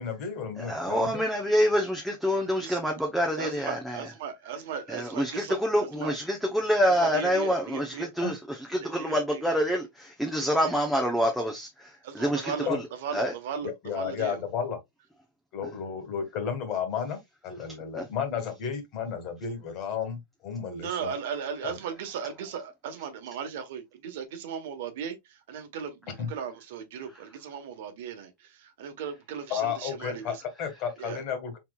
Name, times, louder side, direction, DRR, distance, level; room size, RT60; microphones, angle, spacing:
voice 1, 0.0-1.2 8.2-8.3 12.7-12.8 13.6-14.8 15.5-21.1 21.6-21.7 26.1-26.3 29.5-31.6, left 7 dB, 40° left, 1.6 m, -33 dB
voice 2, 0.6-4.0 4.9-8.4 8.7-11.9 12.1-12.5 13.1-13.3 17.9-18.0, equal, ahead, 0.8 m, -26 dB
voice 3, 3.4-6.1 6.9-8.1 8.8-9.5 10.6-10.8 12.0-12.7 13.0-14.4 20.8-30.4 31.0-31.2, right 7 dB, 65° right, 1.2 m, -37 dB
4.2 x 4.2 x 2.4 m
supercardioid pair, 145°, 0 cm